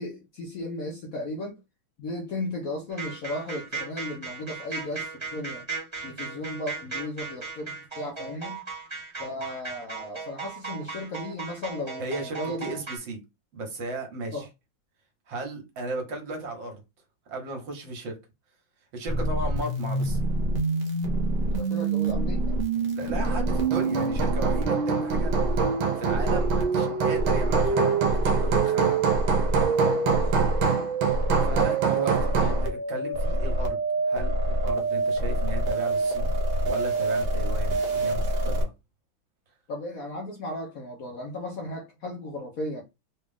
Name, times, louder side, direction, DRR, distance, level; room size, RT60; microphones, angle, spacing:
voice 1, 0.0-1.6 2.0-5.6 6.0-8.6 9.2-12.7 14.3-14.4 19.2-19.3 21.6-22.5 30.1-30.4 39.7-42.8, left 1 dB, 60° left, 1.0 m, -35 dB
sound 1, 2.9-13.0, right 4 dB, 15° right, 1.2 m, -37 dB
voice 2, 12.0-13.2 13.5-14.5 15.3-16.8 17.3-18.2 18.9-20.3 23.0-25.3 26.0-29.0 31.4-33.8 34.0-36.3 36.6-38.7, right 2 dB, 70° right, 1.9 m, -35 dB
sound 2, 19.1-38.6, right 2 dB, 50° right, 0.7 m, -26 dB
Hammer, 23.0-32.7, right 6 dB, 85° right, 1.6 m, -26 dB
4.0 x 2.4 x 3.5 m
omnidirectional pair, 2.2 m